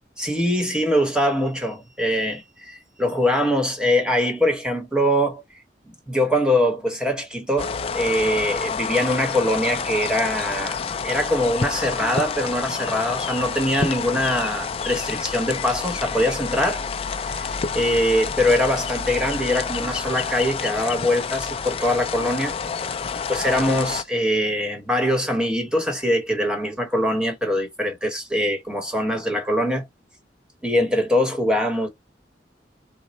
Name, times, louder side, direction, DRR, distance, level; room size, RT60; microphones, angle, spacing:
voice 1, 0.2-5.4 6.1-16.8 17.3-22.5 23.3-29.9 30.6-31.9, left 1 dB, 5° right, 1.0 m, -23 dB
sound 1, 7.6-24.0, left 5 dB, 30° left, 0.3 m, -28 dB
4.2 x 2.1 x 4.0 m
head